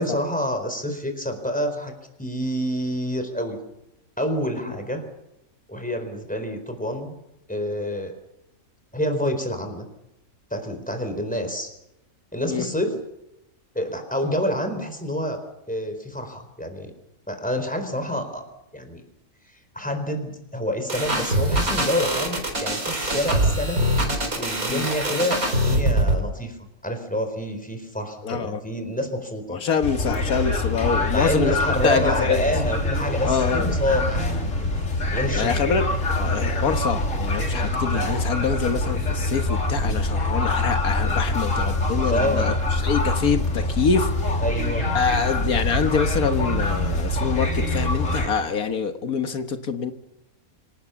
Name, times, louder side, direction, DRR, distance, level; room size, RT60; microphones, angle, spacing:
voice 1, 0.0-1.9 2.2-3.6 4.2-5.0 5.7-7.1 7.5-8.1 8.9-9.9 10.5-11.7 12.3-12.9 13.7-15.4 15.7-16.9 17.3-18.4 18.7-19.0 19.7-23.8 24.4-29.6 31.1-34.7 35.1-35.5 42.1-42.5 44.4-44.9, equal, 5° left, 5 dB, 4.3 m, -27 dB
sound 1, 20.9-26.2, right 1 dB, 75° right, 4.7 m, -23 dB
voice 2, 28.2-28.6 29.5-31.6 31.8-32.4 33.3-33.7 35.4-35.8 36.2-42.6 42.8-44.1 44.9-49.9, left 6 dB, 85° left, 7 dB, 1.9 m, -25 dB
sound 2, 29.8-48.3, left 2 dB, 60° left, 3.4 m, -24 dB
26.0 x 18.5 x 7.2 m, 0.89 s
omnidirectional pair, 1.5 m